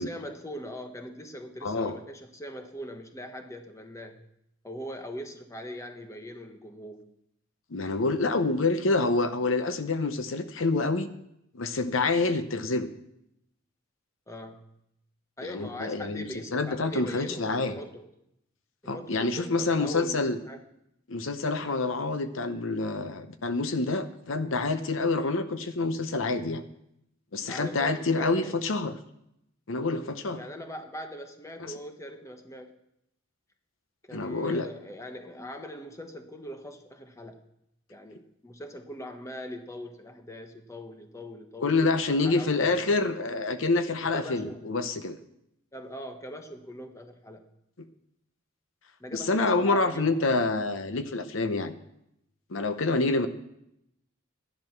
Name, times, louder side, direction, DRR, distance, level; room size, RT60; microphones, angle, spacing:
voice 1, 0.0-4.2 4.6-7.0 14.3-14.7 15.4-18.1 18.8-20.6 27.5-28.6 30.3-32.8 34.0-37.4 37.9-43.1 44.1-44.7 45.7-47.5 49.0-50.2, equal, 15° left, 6 dB, 1.1 m, -41 dB
voice 2, 1.6-2.0 7.7-11.1 11.5-12.9 15.4-17.7 18.9-20.4 21.1-26.6 27.3-28.9 29.7-30.4 31.6-31.7 34.1-34.7 41.6-45.2 49.1-51.7 52.5-53.3, left 3 dB, 70° left, 10 dB, 0.8 m, -27 dB
13.0 x 11.0 x 5.9 m, 0.79 s
head